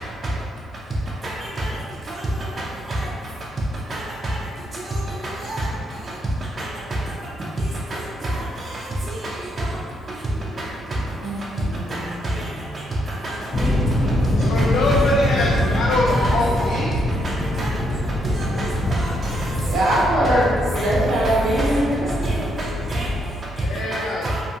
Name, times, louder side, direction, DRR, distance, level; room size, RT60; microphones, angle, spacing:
voice 1, 1.2-1.7 2.9-3.0 3.9-4.4 4.9-5.0 5.4-5.7 6.6-6.7 8.2-8.3 9.6-9.7 11.9-12.0 13.2-13.7 14.6-14.7 14.9-15.0 15.5-15.7 16.1-16.7 17.6-17.7 18.4-18.5 18.9-19.5 19.9-20.0 20.8-20.9 21.4-21.6 22.2-22.3 22.9-23.1 24.2-24.4, right 1 dB, 35° right, -6 dB, 0.4 m, -27 dB
voice 2, 11.2-12.2 19.7-22.4, right 1 dB, 85° right, -6 dB, 0.6 m, -22 dB
sound 1, 13.5-23.3, left 1 dB, 45° left, 0.6 m, -24 dB
voice 3, 14.4-16.9 20.1-20.4 20.7-20.8 23.7-24.3, left 2 dB, 90° left, -5 dB, 0.3 m, -23 dB
2.5 x 2.3 x 2.7 m, 2.3 s
cardioid pair, 90°, 0 cm